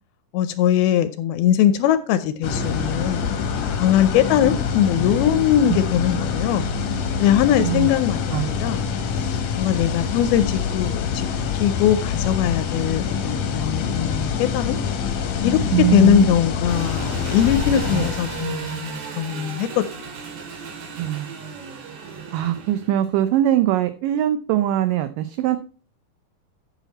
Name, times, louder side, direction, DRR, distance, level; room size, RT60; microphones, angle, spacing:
voice 1, 0.3-3.3 3.8-6.7 7.2-8.8 9.1-14.8 15.4-19.8, left 10 dB, 85° left, 2.4 m, -21 dB
sound 1, 2.4-18.8, left 6 dB, 60° left, 2.0 m, -25 dB
voice 2, 7.6-7.9 8.3-8.5 15.7-16.3 17.8-18.1 21.0-21.3 22.3-25.6, right 13 dB, 85° right, 1.9 m, -21 dB
Engine, 16.7-23.2, right 6 dB, 65° right, 3.3 m, -35 dB
8.2 x 8.1 x 4.1 m
omnidirectional pair, 4.4 m